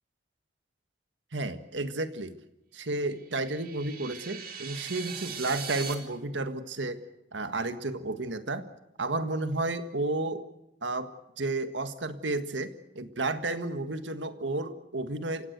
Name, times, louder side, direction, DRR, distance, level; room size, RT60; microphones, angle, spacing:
voice 1, 1.3-2.3 2.7-7.0 7.3-8.6 9.0-10.4 10.8-11.1 11.4-15.5, right 2 dB, 90° right, 9 dB, 1.7 m, -32 dB
sound 1, 3.2-5.9, right 7 dB, 55° right, 2.9 m, -40 dB
28.5 x 16.0 x 8.2 m, 0.91 s
head